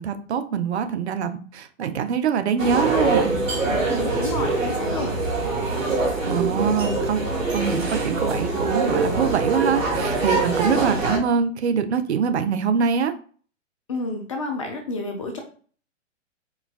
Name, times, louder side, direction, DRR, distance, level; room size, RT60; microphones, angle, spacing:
voice 1, 0.0-3.4 6.3-7.3 7.5-13.1, right 6 dB, 55° right, 9 dB, 0.5 m, -24 dB
sound 1, 2.6-11.2, right 3 dB, 80° right, 1.3 m, -24 dB
voice 2, 3.9-5.1 13.9-15.4, left 2 dB, 25° left, 2 dB, 0.4 m, -30 dB
4.4 x 2.2 x 2.3 m, 0.42 s
figure-of-eight pair, 120°, 39 cm